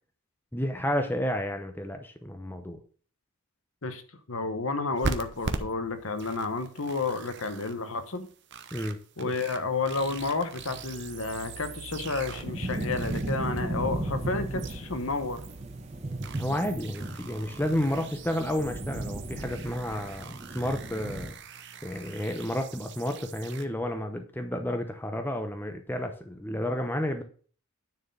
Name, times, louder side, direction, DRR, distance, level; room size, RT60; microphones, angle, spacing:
voice 1, 0.5-2.8 8.7-9.3 16.4-21.3 21.8-27.2, left 1 dB, 10° left, 6 dB, 0.7 m, -31 dB
voice 2, 4.3-8.3 9.2-15.4, left 3 dB, 65° left, 9 dB, 1.1 m, -31 dB
sound 1, 5.0-7.7 8.1-23.6, right 4 dB, 50° right, 0.8 m, -41 dB
sound 2, 10.8-21.3, right 1 dB, 30° right, 1.0 m, -36 dB
9.8 x 4.5 x 5.5 m, 0.43 s
head